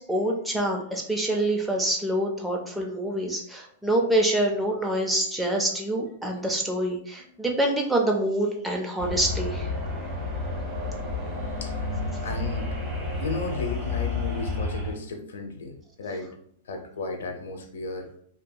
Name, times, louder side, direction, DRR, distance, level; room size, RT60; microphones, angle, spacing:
voice 1, 0.1-9.7, right 1 dB, 5° right, 0 dB, 0.4 m, -26 dB
voice 2, 7.2-7.6 11.6-11.7 12.2-12.8 13.2-16.3 16.7-18.1, left 3 dB, 90° left, 5 dB, 0.6 m, -34 dB
sound 1, 9.0-14.9, left 3 dB, 25° right, 1.1 m, -30 dB
2.8 x 2.6 x 2.2 m, 0.64 s
supercardioid pair, 160°, 0 cm